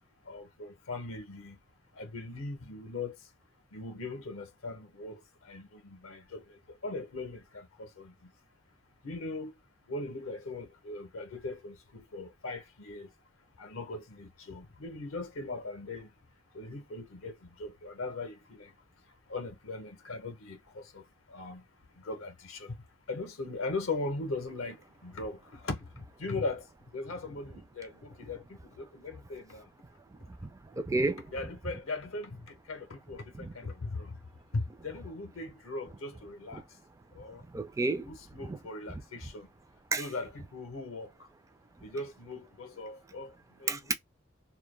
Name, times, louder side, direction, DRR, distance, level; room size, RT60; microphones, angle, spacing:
voice 1, 0.3-1.6 2.0-3.2 3.7-8.1 9.0-9.5 9.9-13.1 13.6-16.1 16.5-18.7 19.3-21.6 22.0-22.8 23.1-26.7 26.9-29.7 31.3-34.2 34.5-36.6 37.1-37.4 38.0-39.5 40.0-41.1 41.8-43.3 43.6-43.9, left 3 dB, 75° left, 0.6 m, -39 dB
voice 2, 30.3-31.2 33.3-33.5 37.5-38.1 38.5-38.6 39.9-40.1 43.7-43.9, right 3 dB, 15° right, 0.3 m, -31 dB
2.2 x 2.1 x 3.1 m
head